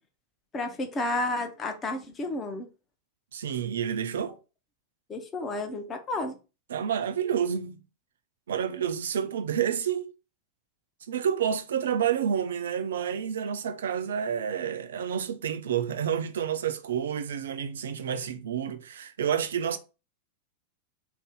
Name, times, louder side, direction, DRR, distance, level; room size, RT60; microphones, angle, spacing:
voice 1, 0.5-2.7 5.1-6.4, left 2 dB, 20° left, 0.6 m, -31 dB
voice 2, 3.3-4.4 6.7-7.8 8.5-10.1 11.1-19.8, right 8 dB, 65° right, 0.3 m, -29 dB
2.6 x 2.0 x 3.5 m
figure-of-eight pair, 90°, 0 cm